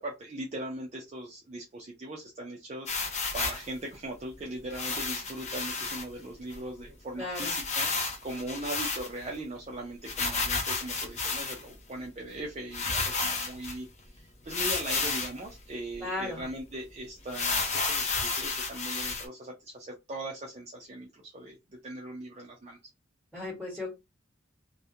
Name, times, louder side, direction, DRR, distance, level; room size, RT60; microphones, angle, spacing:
voice 1, 0.0-21.6 21.8-22.8, right 1 dB, 35° right, -1 dB, 0.4 m, -40 dB
sound 1, 2.9-3.7 4.7-6.0 6.5-6.6 6.8-6.9 7.3-9.4 10.0-11.7 12.4-12.5 12.7-13.8 14.5-15.4 15.9-16.0 16.4-16.5 17.3-19.2, left 4 dB, 35° left, 0.5 m, -31 dB
voice 2, 7.2-7.5 16.0-16.4 23.3-23.9, left 2 dB, ahead, -4 dB, 1.2 m, -35 dB
2.3 x 2.1 x 2.7 m, 0.23 s
head